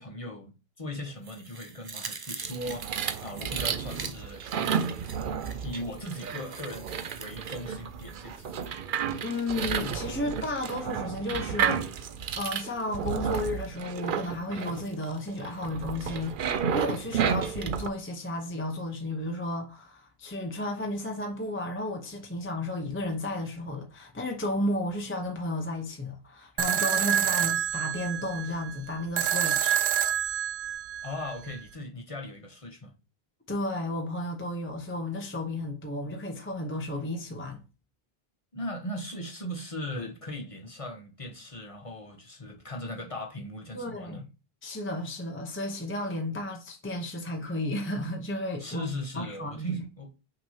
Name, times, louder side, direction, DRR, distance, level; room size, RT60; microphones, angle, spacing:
voice 1, 0.0-4.9 5.6-8.7 31.0-32.9 38.5-44.2 48.6-50.1, equal, 35° left, 1.1 m, -38 dB
sound 1, 1.2-8.7 9.1-9.2, right 4 dB, 35° right, 0.4 m, -45 dB
sound 2, 2.4-17.9, right 7 dB, 60° right, 0.7 m, -32 dB
voice 2, 9.2-11.9 12.4-30.0 33.5-37.6 43.7-44.3 44.6-48.9 49.1-49.8, left 1 dB, 15° left, 0.7 m, -33 dB
sound 3, 26.6-31.6, right 10 dB, 90° right, 0.9 m, -28 dB
6.0 x 2.9 x 5.5 m
omnidirectional pair, 1.0 m